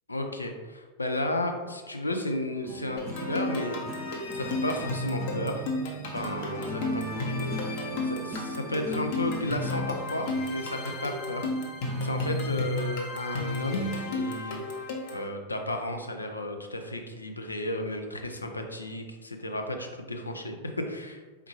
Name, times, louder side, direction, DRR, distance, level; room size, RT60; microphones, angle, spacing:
voice 1, 0.1-3.8 4.1-5.7 6.1-11.5 12.0-14.6 15.1-21.2 21.4-21.5, left 1 dB, 80° left, 4 dB, 0.5 m, -33 dB
sound 1, 2.6-12.6, right 1 dB, 25° right, 0.8 m, -39 dB
sound 2, 3.0-15.3, left 2 dB, 50° left, 0.8 m, -33 dB
4.5 x 3.5 x 2.9 m, 1.3 s
figure-of-eight pair, 90°, 0 cm